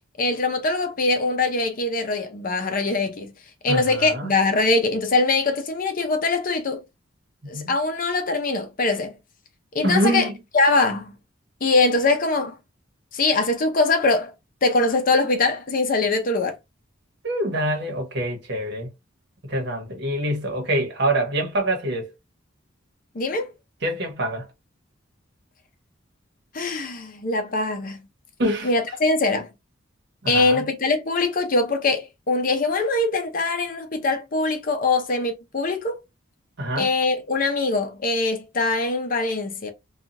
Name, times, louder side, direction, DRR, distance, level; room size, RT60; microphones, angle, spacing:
voice 1, 0.2-3.3 3.6-6.8 7.5-9.2 9.7-10.3 10.5-11.1 11.6-12.5 13.1-14.3 14.6-16.6 23.1-23.5 26.5-28.0 28.6-29.5 30.3-36.0 36.8-39.7, left 3 dB, 45° left, 0.6 m, -22 dB
voice 2, 3.7-4.3 7.5-7.7 9.8-10.3 17.2-18.9 19.4-22.1 23.8-24.5 28.4-28.7 30.2-30.7 36.6-36.9, right 1 dB, 55° right, 1.0 m, -25 dB
2.8 x 2.3 x 2.5 m
head